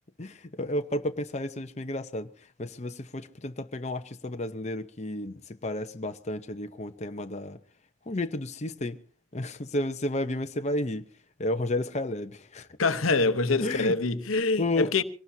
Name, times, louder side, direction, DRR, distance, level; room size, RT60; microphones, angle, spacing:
voice 1, 0.2-2.3 2.6-7.6 8.1-9.0 9.3-11.1 11.4-12.7 13.6-14.0 14.6-14.9, left 1 dB, 35° left, 0.9 m, -32 dB
voice 2, 12.8-15.0, left 3 dB, 90° left, 1.1 m, -25 dB
24.5 x 18.5 x 2.8 m
head